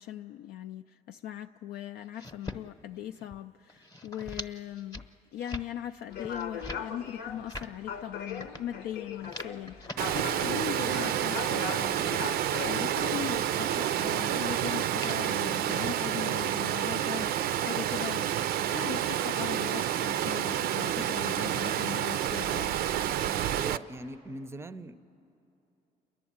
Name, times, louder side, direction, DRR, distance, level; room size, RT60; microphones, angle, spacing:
voice 1, 0.0-5.0 5.3-17.3 17.6-22.8, left 11 dB, 70° left, 7 dB, 0.4 m, -40 dB
sound 1, 2.0-2.6 3.0-3.4 3.7-4.5 4.8-5.1 5.4-5.7 6.1-6.8 7.3-7.7 8.3-8.6 9.1-10.0 10.5-11.3 11.8-12.9 13.6-13.8 14.5-14.6 14.9-15.4 16.0-17.0 17.3-17.7, left 1 dB, 20° left, 0.9 m, -44 dB
sound 2, 6.1-13.7, left 7 dB, 85° left, 0.9 m, -40 dB
Water, 10.0-23.8, right 11 dB, 65° right, 0.4 m, -29 dB
voice 2, 23.5-25.0, right 2 dB, 15° right, 13 dB, 0.5 m, -40 dB
29.5 x 11.0 x 8.7 m, 2.9 s
cardioid pair, 110°, 17 cm